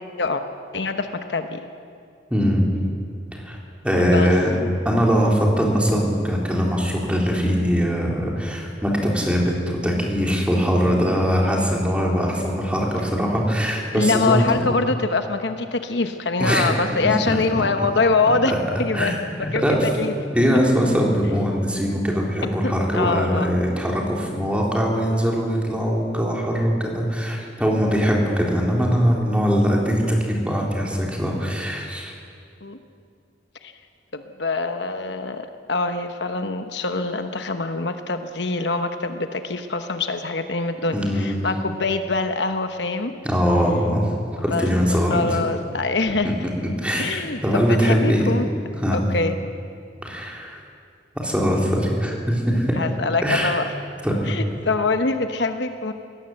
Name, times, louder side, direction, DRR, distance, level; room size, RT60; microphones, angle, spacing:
voice 1, 0.7-1.7 4.0-4.3 13.9-18.5 18.8-19.1 19.5-20.1 22.6-23.6 32.6-32.8 33.6-33.7 34.1-43.1 44.5-44.7 45.1-46.3 47.0-48.5 48.9-49.4 52.8-53.6 54.3-55.9, left 3 dB, 65° left, 7 dB, 1.1 m, -24 dB
voice 2, 2.3-2.6 3.4-3.6 3.8-4.6 4.9-14.4 16.4-16.9 17.3-17.4 18.5-18.6 18.9-19.9 20.3-32.2 40.9-41.4 43.2-44.1 44.4-45.4 46.4-46.5 46.8-48.3 48.8-49.0 50.0-50.6 51.2-52.8 53.2-53.6 54.0-54.3, equal, 5° right, -1 dB, 3.6 m, -21 dB
22.5 x 18.0 x 7.8 m, 2.4 s
head